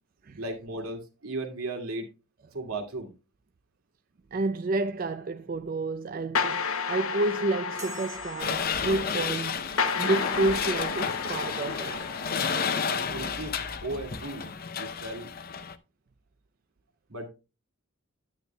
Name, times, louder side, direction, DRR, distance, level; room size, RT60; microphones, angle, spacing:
voice 1, 0.4-2.1 2.5-3.1 12.8-13.6 13.8-14.5 14.8-15.3 17.1-17.3, right 2 dB, 90° right, 2.4 m, -36 dB
voice 2, 4.3-9.6 10.0-12.1, right 2 dB, 40° right, 0.4 m, -30 dB
sound 1, 6.3-13.2, left 5 dB, 80° left, 0.9 m, -33 dB
sound 2, 7.8-9.3, right 5 dB, 15° right, 1.0 m, -46 dB
sound 3, 8.4-15.7, left 6 dB, 45° left, 0.6 m, -31 dB
9.6 x 9.5 x 2.2 m
head